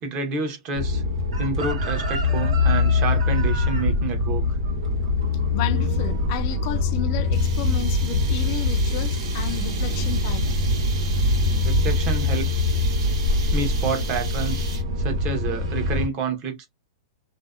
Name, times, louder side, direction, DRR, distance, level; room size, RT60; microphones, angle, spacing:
voice 1, 0.0-1.0 1.4-4.6 11.6-12.7 13.5-14.7 15.0-16.7, right 4 dB, 30° right, 0.7 m, -29 dB
sound 1, 0.7-16.1, left 3 dB, 60° right, 0.8 m, -23 dB
Chicken rooster, 1.3-6.3 6.6-6.9, right 4 dB, 85° right, 1.1 m, -36 dB
voice 2, 5.5-10.5, left 9 dB, 35° left, 0.3 m, -32 dB
sound 2, 7.3-15.0, right 6 dB, 45° right, 1.2 m, -38 dB
2.6 x 2.1 x 2.3 m
supercardioid pair, 165°, 3 cm